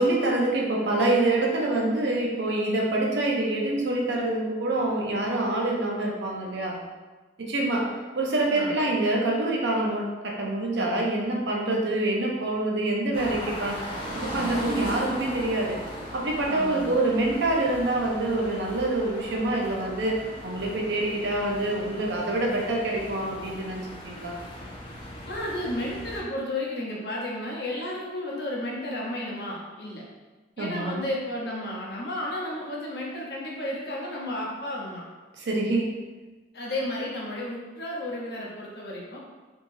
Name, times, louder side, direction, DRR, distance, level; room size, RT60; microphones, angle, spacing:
voice 1, 0.0-6.8 7.4-13.8 14.2-15.8 16.1-24.4 30.6-31.0 35.3-35.9, right 2 dB, 70° right, -1 dB, 0.6 m, -26 dB
sound 1, 13.1-26.2, equal, 25° left, 0.6 m, -38 dB
voice 2, 16.5-17.0 25.3-30.0 30.6-35.0 36.5-39.2, left 1 dB, 55° left, -4 dB, 0.8 m, -33 dB
3.5 x 3.1 x 2.6 m, 1.3 s
head